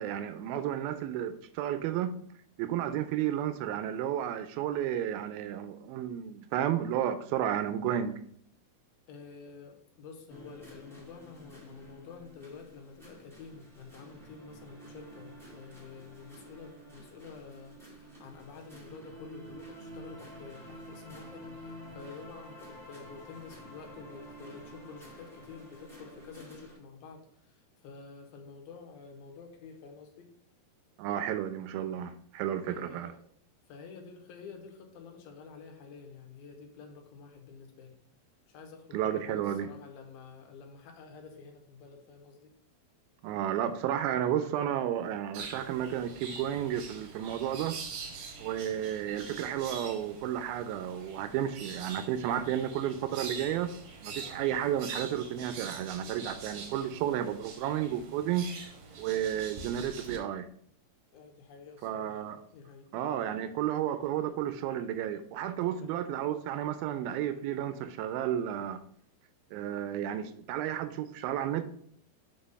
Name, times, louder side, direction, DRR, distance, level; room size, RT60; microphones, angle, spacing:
voice 1, 0.0-2.2 2.6-8.2 31.0-33.1 38.9-39.7 43.2-47.8 48.4-53.7 54.0-58.7 59.0-60.5 61.8-62.4 62.9-68.8 69.5-71.6, right 10 dB, 85° right, 11 dB, 2.3 m, -32 dB
voice 2, 9.1-30.3 32.7-33.2 33.7-38.0 38.5-42.5 61.1-62.2 62.5-62.9 65.7-65.9, left 5 dB, 80° left, 3 dB, 2.9 m, -49 dB
sound 1, 10.3-26.8, equal, ahead, 1.0 m, -50 dB
sound 2, 45.3-60.2, right 4 dB, 65° right, 2.5 m, -44 dB
6.0 x 4.1 x 5.2 m, 0.63 s
omnidirectional pair, 4.3 m